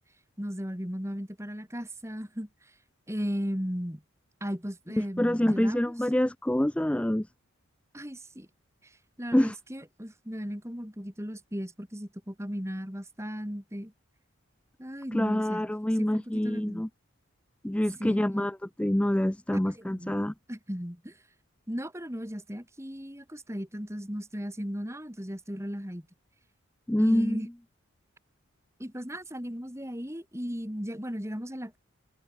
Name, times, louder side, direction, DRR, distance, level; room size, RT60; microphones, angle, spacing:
voice 1, 0.4-2.7 3.1-4.0 4.4-5.9 7.9-8.5 8.8-13.9 14.8-15.7 16.0-16.8 18.0-18.2 19.7-20.2 20.5-21.2 21.7-26.1 27.0-27.5 28.8-31.8, equal, 15° right, 3.9 m, -36 dB
voice 2, 5.2-7.3 9.3-9.6 15.1-16.9 17.6-20.3 26.9-27.5, left 1 dB, 5° left, 0.3 m, -26 dB
head